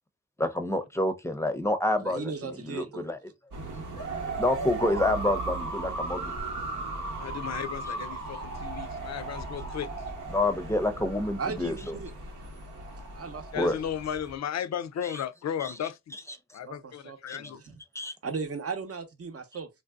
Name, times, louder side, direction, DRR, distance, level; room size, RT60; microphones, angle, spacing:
voice 1, 0.4-3.2 4.4-6.3 10.3-12.0 13.5-13.8 15.0-15.2 15.6-15.7 17.3-17.4 17.9-18.1, left 1 dB, 10° left, 0.6 m, -28 dB
voice 2, 2.0-3.0 11.4-12.1 13.1-13.7 16.6-17.6 18.2-19.7, right 5 dB, 50° right, 0.8 m, -37 dB
sound 1, 3.5-14.4, right 3 dB, 85° right, 0.9 m, -36 dB
voice 3, 7.2-9.9 13.5-16.2 16.5-17.6, left 9 dB, 60° left, 0.4 m, -35 dB
3.3 x 2.6 x 2.3 m
cardioid pair, 55°, 30 cm